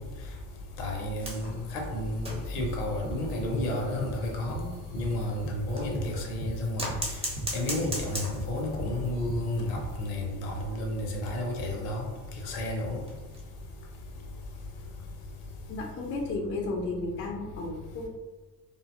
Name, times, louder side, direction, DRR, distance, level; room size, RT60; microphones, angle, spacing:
voice 1, 0.8-6.9 7.5-12.0 12.4-13.0, left 1 dB, 65° left, 0.6 m, -31 dB
sound 1, 1.2-6.0 6.8-8.7 9.0-9.1 9.4-9.5 9.8-9.9 10.6-13.7 14.1-14.3 15.5-15.6, equal, 15° right, 0.6 m, -40 dB
sound 2, 2.6-10.0, right 2 dB, 75° right, 0.7 m, -37 dB
voice 2, 15.7-18.1, left 2 dB, 30° left, 0.3 m, -33 dB
2.5 x 2.1 x 2.3 m
figure-of-eight pair, 45°, 48 cm